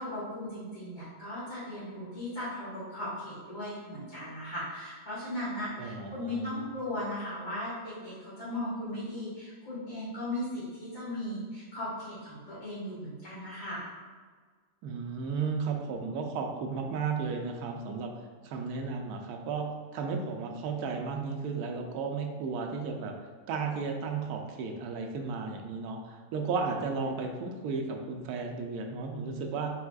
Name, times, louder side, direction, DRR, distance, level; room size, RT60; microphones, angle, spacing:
voice 1, 0.0-13.9, left 1 dB, 60° left, -11 dB, 1.9 m, -37 dB
voice 2, 5.8-6.7 14.8-23.1 23.5-29.7, right 5 dB, 75° right, 3 dB, 1.1 m, -34 dB
4.7 x 3.6 x 2.3 m, 1.5 s
omnidirectional pair, 1.7 m